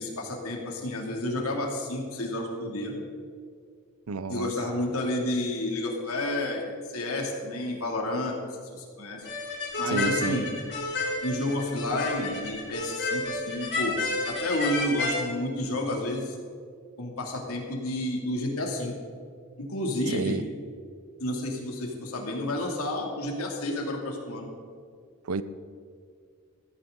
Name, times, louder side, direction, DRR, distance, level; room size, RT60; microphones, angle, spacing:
voice 1, 0.0-2.9 4.3-8.3 8.7-9.3 9.8-10.5 11.2-14.0 14.3-16.4 17.0-18.9 19.6-20.4 21.2-24.5, left 1 dB, 75° left, 0 dB, 2.7 m, -30 dB
voice 2, 4.1-4.5 9.9-10.4 20.1-20.4 25.2-25.4, right 4 dB, 70° right, 14 dB, 0.7 m, -30 dB
sound 1, 9.2-15.2, left 2 dB, 55° left, 3.5 m, -31 dB
15.5 x 15.0 x 3.9 m, 2.2 s
head